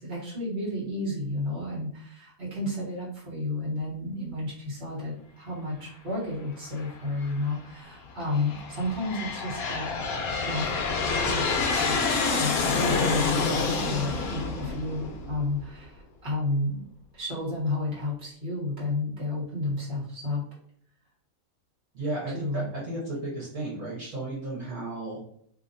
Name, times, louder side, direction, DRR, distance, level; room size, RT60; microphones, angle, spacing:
voice 1, 0.0-9.8 10.4-11.5 11.8-12.0 12.3-16.8 17.1-20.4 22.3-22.7, left 2 dB, 40° right, -6 dB, 1.6 m, -32 dB
Aircraft, 6.8-7.3 8.1-15.6, left 4 dB, 80° left, 1.1 m, -28 dB
voice 2, 21.9-25.2, right 2 dB, 65° right, -6 dB, 1.4 m, -34 dB
3.0 x 2.8 x 2.6 m, 0.63 s
omnidirectional pair, 1.5 m